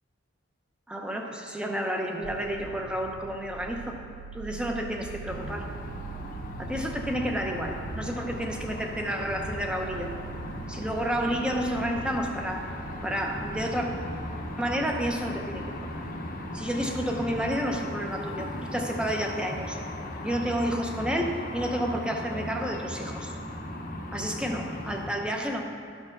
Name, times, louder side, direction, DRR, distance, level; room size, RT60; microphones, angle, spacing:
voice 1, 0.9-4.0 4.3-5.7 6.6-10.1 10.7-12.7 13.0-13.9 14.6-15.6 16.0-16.1 16.5-19.8 20.2-23.3 24.1-25.6, equal, 5° right, 2 dB, 0.6 m, -30 dB
sound 1, 2.2-18.1, right 7 dB, 70° right, 0.4 m, -45 dB
sound 2, 5.3-25.1, left 1 dB, 40° left, 0.8 m, -37 dB
12.0 x 4.6 x 5.9 m, 2.5 s
head